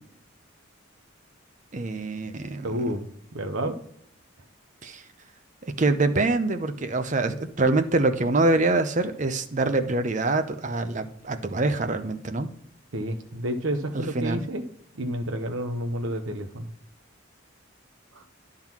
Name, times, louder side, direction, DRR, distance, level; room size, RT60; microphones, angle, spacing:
voice 1, 1.7-2.7 4.8-5.0 5.8-12.5 13.9-14.4, right 2 dB, 35° right, 8 dB, 0.7 m, -25 dB
voice 2, 2.6-3.8 12.9-14.6 14.9-16.7 18.1-18.2, right 1 dB, 70° right, 5 dB, 0.8 m, -30 dB
10.5 x 3.8 x 6.0 m, 0.70 s
head